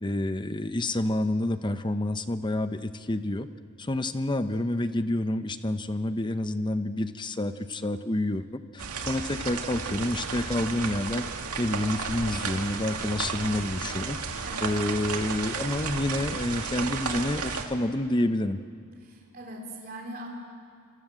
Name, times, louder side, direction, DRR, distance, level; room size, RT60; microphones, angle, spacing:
voice 1, 0.0-3.5 3.8-11.2 11.6-18.6, left 1 dB, 20° left, 10 dB, 0.8 m, -28 dB
sound 1, 8.8-17.7, right 5 dB, 90° right, 2.2 m, -33 dB
voice 2, 19.0-20.3, right 1 dB, 40° right, -1 dB, 3.5 m, -41 dB
28.0 x 25.5 x 7.7 m, 2.3 s
head